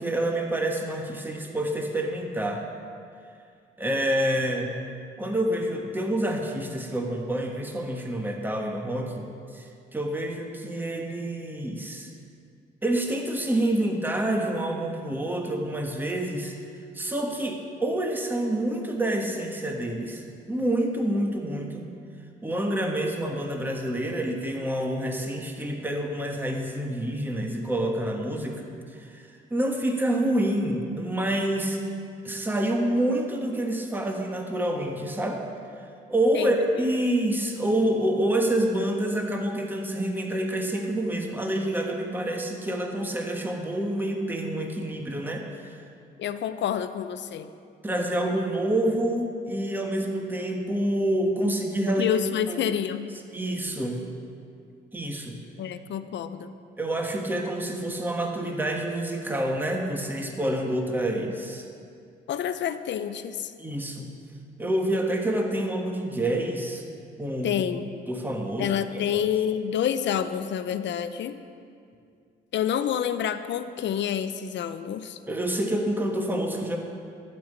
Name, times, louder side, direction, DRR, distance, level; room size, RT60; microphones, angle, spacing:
voice 1, 0.0-2.6 3.8-4.7 5.2-9.3 9.5-12.1 12.8-16.6 16.9-20.2 20.5-22.0 22.4-28.6 28.9-31.8 32.2-35.4 36.1-45.8 47.8-52.1 52.5-52.7 53.3-54.1 54.9-55.4 56.8-61.6 63.6-64.1 64.6-66.8 67.2-67.5 68.1-68.8 69.1-69.2 75.3-76.8, right 1 dB, 10° right, 2 dB, 1.3 m, -27 dB
voice 2, 46.2-47.5 51.9-53.1 55.6-56.5 62.3-63.5 67.4-67.9 68.6-71.4 72.5-75.2, left 9 dB, 65° left, 11 dB, 0.6 m, -28 dB
12.0 x 5.5 x 8.0 m, 2.3 s
cardioid pair, 90°, 20 cm